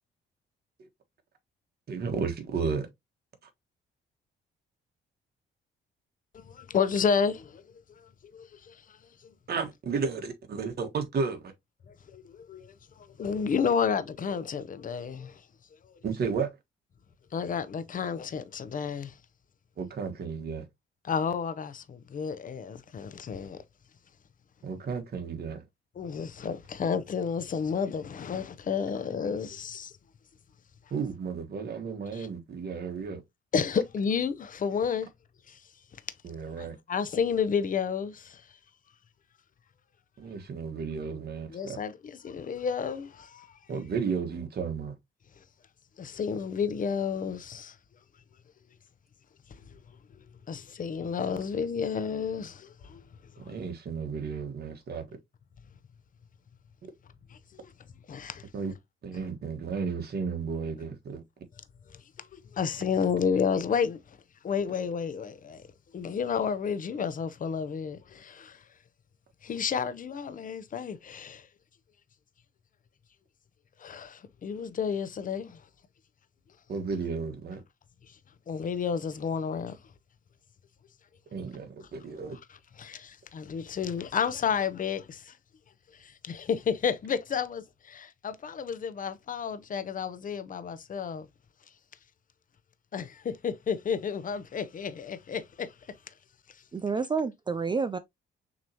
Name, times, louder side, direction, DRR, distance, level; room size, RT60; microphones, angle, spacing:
voice 1, 1.9-2.9 9.5-11.5 16.0-16.5 19.8-20.7 24.6-25.6 30.9-33.2 36.2-36.8 40.2-41.8 43.7-44.9 53.4-55.0 58.5-58.7 59.0-61.2 76.7-77.6 81.3-82.4, right 5 dB, 55° right, 1.4 m, -33 dB
voice 2, 6.3-7.6 8.3-9.0 12.1-12.7 13.0-15.4 17.3-19.1 21.0-23.6 26.0-29.9 32.1-32.3 33.5-35.1 35.5-35.6 36.6-38.4 41.5-43.5 46.0-47.7 49.7-49.8 50.5-53.0 53.4-53.6 57.3-57.7 58.1-58.4 62.3-64.0 64.4-65.6 65.9-68.6 69.4-71.5 73.8-75.6 78.5-79.8 82.3-85.3 86.0-91.3 92.9-95.7, left 6 dB, 40° left, 0.7 m, -31 dB
voice 3, 96.7-98.0, right 5 dB, 25° right, 0.4 m, -29 dB
6.2 x 3.1 x 2.8 m
cardioid pair, 90°, 20 cm